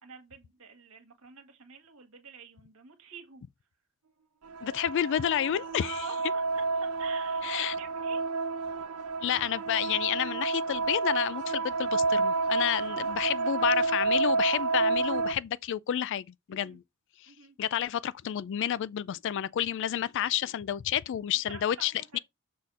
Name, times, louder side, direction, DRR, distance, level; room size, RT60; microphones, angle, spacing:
voice 1, 0.0-3.4 5.8-8.2 16.5-16.8 17.3-17.6 21.5-22.2, right 5 dB, 70° right, 1.7 m, -47 dB
sound 1, 4.5-15.3, right 3 dB, 85° right, 0.7 m, -30 dB
voice 2, 4.6-6.0 7.4-7.7 9.2-16.8 17.6-22.2, left 10 dB, 55° left, 0.3 m, -30 dB
6.5 x 4.1 x 4.1 m
head